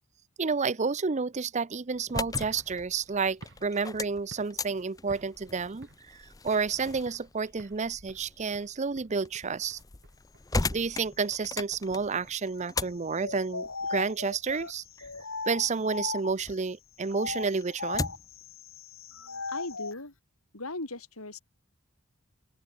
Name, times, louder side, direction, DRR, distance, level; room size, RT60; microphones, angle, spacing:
voice 1, 0.4-5.9 6.1-9.8 10.7-14.8 15.5-18.1, right 5 dB, 35° right, 0.6 m, -30 dB
sound 1, 1.9-16.6 17.0-18.4, left 3 dB, 15° left, 0.6 m, -39 dB
sound 2, 2.4-4.8 5.1-5.5 5.8-6.8 7.1-7.3 7.6-10.7, right 1 dB, 55° right, 4.7 m, -52 dB
sound 3, 13.1-16.5 17.1-20.0, left 4 dB, 65° left, 3.8 m, -37 dB
voice 2, 19.2-20.1 20.5-21.4, left 2 dB, 85° left, 5.2 m, -39 dB
open air
head